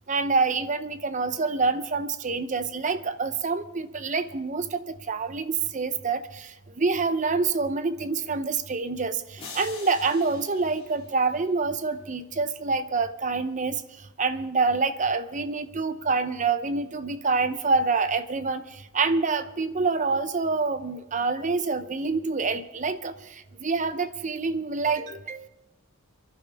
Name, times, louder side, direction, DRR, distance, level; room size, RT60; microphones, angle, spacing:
voice 1, 0.1-13.8 14.2-25.5, right 4 dB, 35° right, 11 dB, 0.7 m, -27 dB
sound 1, 9.4-11.7, left 4 dB, 25° left, 3.5 m, -45 dB
27.5 x 11.5 x 3.5 m, 0.95 s
head